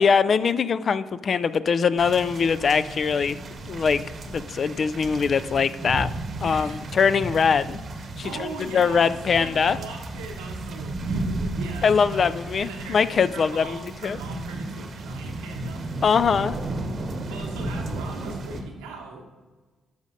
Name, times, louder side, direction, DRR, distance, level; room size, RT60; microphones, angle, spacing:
voice 1, 0.0-3.4 3.7-6.1 6.4-7.8 8.4-9.8 11.8-13.8 14.0-14.2 16.0-16.6, left 6 dB, 55° left, 14 dB, 0.3 m, -22 dB
sound 1, 2.0-18.6, right 2 dB, 55° right, 0.9 m, -34 dB
voice 2, 6.4-6.8 8.2-13.0 13.3-15.8 17.2-19.2, right 3 dB, 90° right, 1 dB, 1.0 m, -40 dB
12.5 x 5.0 x 2.7 m, 1.3 s
hypercardioid pair, 50°, 0 cm